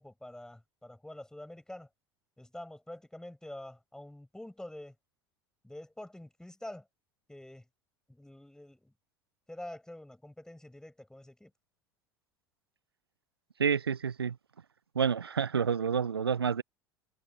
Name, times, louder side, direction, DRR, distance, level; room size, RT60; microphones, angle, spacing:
voice 1, 0.0-1.9 2.4-4.9 5.6-6.8 7.3-7.6 8.1-8.9 9.5-11.5, left 1 dB, 5° left, 6.6 m, -46 dB
voice 2, 13.6-14.4 14.9-16.6, right 6 dB, 80° right, 0.6 m, -29 dB
figure-of-eight pair, 75°, 13 cm